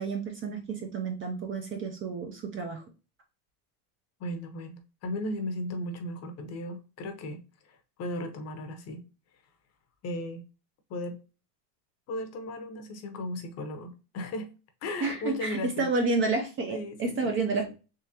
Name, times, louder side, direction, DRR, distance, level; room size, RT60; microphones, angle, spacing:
voice 1, 0.0-2.8 15.0-17.7, right 3 dB, 30° right, 4 dB, 0.4 m, -30 dB
voice 2, 4.2-9.0 10.0-10.4 10.9-11.2 12.1-14.5 14.8-15.9 16.7-17.7, left 1 dB, 35° left, 7 dB, 0.7 m, -36 dB
3.7 x 3.1 x 2.7 m, 0.32 s
supercardioid pair, 145°, 45 cm